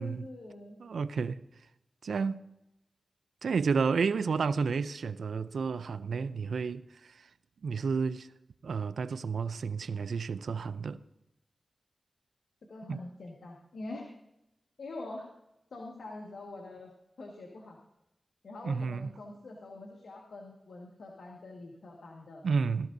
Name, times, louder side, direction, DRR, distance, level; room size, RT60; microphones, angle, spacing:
voice 1, 0.0-0.8 12.7-14.1 14.8-15.3 15.7-17.8 18.4-22.4, left 2 dB, 85° left, 1.6 m, -44 dB
voice 2, 0.8-1.4 2.0-2.4 3.4-7.3 7.6-8.3 8.6-11.0 12.9-13.0 18.6-19.1 22.4-22.9, right 5 dB, 85° right, 0.4 m, -31 dB
18.0 x 12.5 x 2.7 m
cardioid pair, 45°, 0 cm